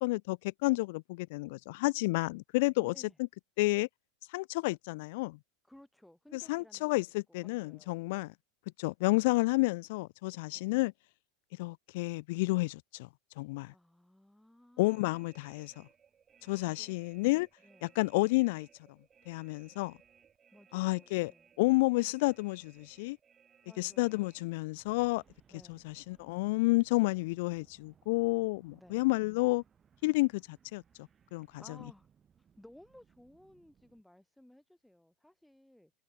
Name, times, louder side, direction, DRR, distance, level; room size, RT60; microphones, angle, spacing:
voice 1, 0.0-2.9 3.6-3.9 4.3-5.4 6.3-8.3 8.8-10.9 11.6-13.1 13.4-13.7 14.8-15.7 16.5-17.5 17.8-18.7 19.3-19.9 20.7-21.3 21.6-23.2 23.8-25.2 25.7-29.6 30.0-30.8 31.3-31.6, left 23 dB, 65° left, 0.3 m, -30 dB
voice 2, 2.8-3.2 5.6-6.9 7.6-8.3 10.5-10.7 13.7-15.1 16.4-17.0 17.6-18.0 20.5-21.5 23.6-24.5 25.5-25.9 28.7-29.1 31.6-32.1 32.6-35.9, left 1 dB, 5° left, 2.3 m, -58 dB
sound 1, 14.8-34.0, right 7 dB, 25° right, 7.1 m, -65 dB
hypercardioid pair, 110°, 0 cm